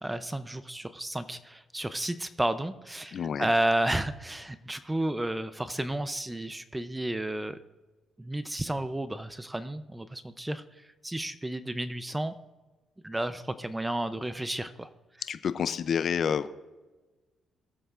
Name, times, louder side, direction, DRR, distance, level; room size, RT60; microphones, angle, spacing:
voice 1, 0.0-7.6 8.2-12.3 13.0-14.9, right 1 dB, 10° right, 12 dB, 0.5 m, -32 dB
voice 2, 3.1-3.5 15.3-16.5, left 7 dB, 55° left, 13 dB, 0.5 m, -29 dB
20.0 x 7.9 x 2.5 m, 1.2 s
cardioid pair, 90°, 0 cm